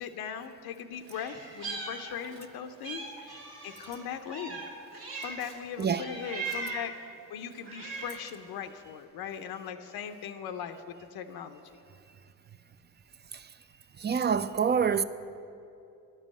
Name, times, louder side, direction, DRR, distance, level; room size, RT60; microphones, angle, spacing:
voice 1, 0.0-4.6 5.2-7.0 7.3-11.6, left 8 dB, 80° left, 0.6 m, -39 dB
Meow, 1.1-2.5 2.8-5.6 6.0-7.0 7.5-8.3, right 3 dB, 85° right, 1.9 m, -40 dB
voice 2, 14.0-15.0, right 7 dB, 30° right, 0.4 m, -26 dB
10.5 x 5.4 x 7.1 m
supercardioid pair, 55°, 37 cm